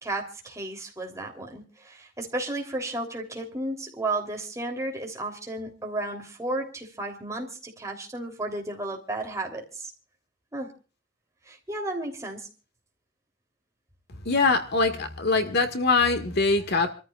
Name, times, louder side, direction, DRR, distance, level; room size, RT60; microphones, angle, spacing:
voice 1, 0.0-9.9 10.5-10.7 11.5-12.5, right 2 dB, 15° right, 3.3 m, -33 dB
voice 2, 14.3-16.9, left 3 dB, 60° left, 1.8 m, -23 dB
28.0 x 14.0 x 2.4 m
head